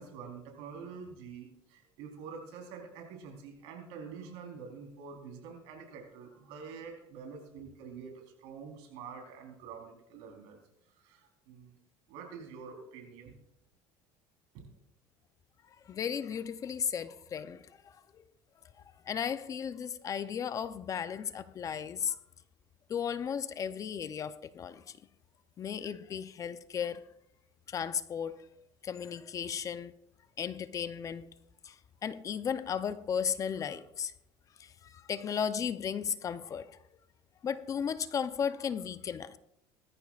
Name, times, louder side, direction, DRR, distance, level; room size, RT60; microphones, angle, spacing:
voice 1, 0.0-10.6 10.9-11.8 12.1-13.3 14.5-14.6, right 5 dB, 80° right, 3.9 m, -47 dB
voice 2, 15.9-18.2 19.1-22.2 22.9-25.0 25.6-27.0 27.7-28.4 28.8-29.9 30.4-31.3 31.6-31.7 32.0-34.1 34.6-36.8 37.4-39.4, left 7 dB, 35° left, 0.6 m, -35 dB
20.0 x 14.0 x 2.4 m
cardioid pair, 125°, 10 cm